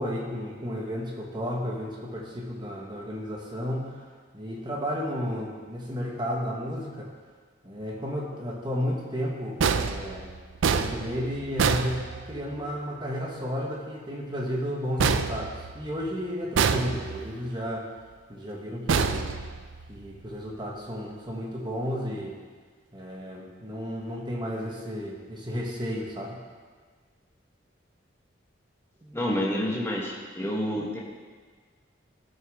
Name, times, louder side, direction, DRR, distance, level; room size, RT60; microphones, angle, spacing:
voice 1, 0.0-4.0 4.3-7.1 7.6-10.3 10.7-17.9 18.3-19.3 19.9-22.4 22.9-26.4 29.0-29.2, equal, 25° right, -2 dB, 1.3 m, -33 dB
sound 1, 9.6-12.7 15.0-16.1 16.6-17.4 18.9-20.0, right 5 dB, 85° right, 0.4 m, -27 dB
voice 2, 29.1-31.0, left 1 dB, 15° left, -3 dB, 1.3 m, -28 dB
13.0 x 6.4 x 3.6 m, 1.5 s
head